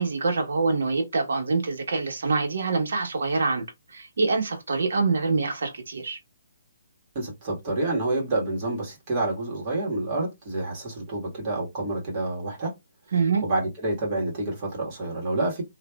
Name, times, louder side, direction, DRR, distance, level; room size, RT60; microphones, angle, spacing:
voice 1, 0.0-6.2 13.1-13.4, right 4 dB, 70° right, 1.1 m, -25 dB
voice 2, 7.1-12.7 13.4-15.6, right 2 dB, 30° right, 1.6 m, -28 dB
3.0 x 2.5 x 2.3 m
hypercardioid pair, 155°, 0 cm